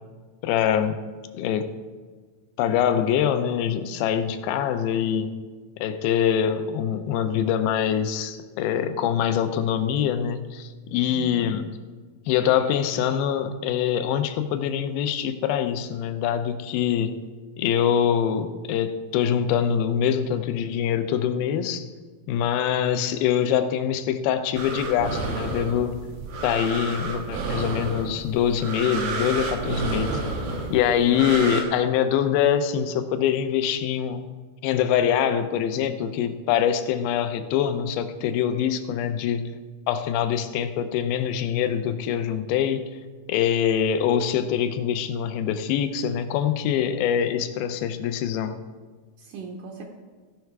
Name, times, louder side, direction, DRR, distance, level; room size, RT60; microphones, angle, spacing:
voice 1, 0.4-1.0 1.4-1.7 2.6-5.3 5.8-11.8 12.3-17.1 17.6-21.9 22.3-26.0 26.4-30.2 30.7-34.2 34.6-39.5 39.9-42.8 43.3-48.6, left 9 dB, 80° left, 9 dB, 2.4 m, -24 dB
voice 2, 11.1-11.5 31.0-31.4 49.2-49.8, right 4 dB, 75° right, 1 dB, 2.1 m, -39 dB
sound 1, 24.6-31.6, right 3 dB, 90° right, 3.1 m, -30 dB
16.0 x 5.6 x 4.6 m, 1.4 s
omnidirectional pair, 4.4 m